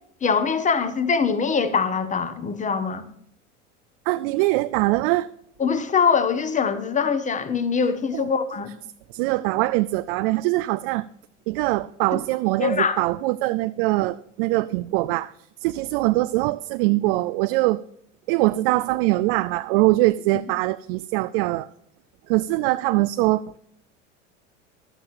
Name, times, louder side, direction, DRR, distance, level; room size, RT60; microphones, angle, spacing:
voice 1, 0.2-3.1 5.6-8.7 12.1-12.2 12.6-13.0, left 6 dB, 20° left, 11 dB, 1.3 m, -23 dB
voice 2, 4.1-5.3 8.1-8.3 9.1-11.0 11.5-15.3 15.6-17.8 18.3-21.7 22.3-23.6, right 19 dB, 45° right, 11 dB, 0.5 m, -22 dB
15.0 x 12.5 x 2.6 m, 0.69 s
figure-of-eight pair, 80°, 37 cm